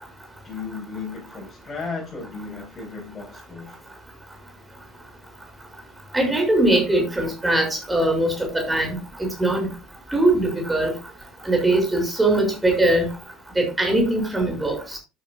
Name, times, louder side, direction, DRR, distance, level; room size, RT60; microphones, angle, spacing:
voice 1, 0.4-3.8, left 4 dB, 25° left, -2 dB, 5.6 m, -35 dB
voice 2, 6.1-9.7 10.1-10.9 11.4-13.1 13.6-15.0, right 1 dB, 10° right, 2 dB, 6.4 m, -21 dB
11.5 x 9.9 x 2.4 m, 0.27 s
figure-of-eight pair, 70°, 0 cm